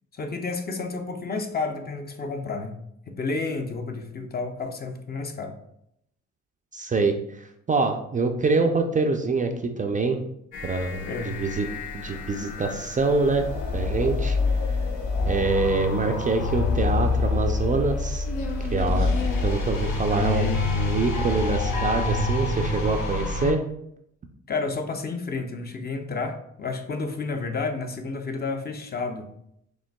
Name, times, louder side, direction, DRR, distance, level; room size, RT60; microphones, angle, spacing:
voice 1, 0.1-2.8 3.1-5.6 11.1-11.4 20.1-20.7 24.5-29.3, left 3 dB, 30° left, 5 dB, 0.6 m, -31 dB
voice 2, 6.7-7.4 7.7-10.2 10.6-11.7 11.9-13.4 13.7-14.6 15.3-18.3 18.7-19.1 19.4-23.6, right 3 dB, 25° right, 4 dB, 0.4 m, -25 dB
sound 1, 10.5-23.5, left 3 dB, 80° left, 0.9 m, -27 dB
5.2 x 3.2 x 2.2 m, 0.74 s
cardioid pair, 90°, 30 cm